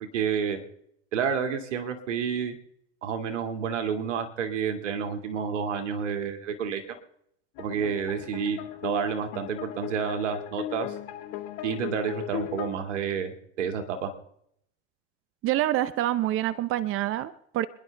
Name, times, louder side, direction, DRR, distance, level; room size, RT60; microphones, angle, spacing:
voice 1, 0.1-0.6 1.1-2.6 3.0-6.8 7.6-10.9 11.6-14.1, right 6 dB, 85° right, 6 dB, 2.2 m, -29 dB
sound 1, 7.6-12.7, left 13 dB, 55° left, 2.0 m, -38 dB
voice 2, 15.4-17.7, right 13 dB, 35° right, 15 dB, 0.7 m, -26 dB
26.5 x 11.0 x 3.4 m, 0.72 s
supercardioid pair, 110°, 35 cm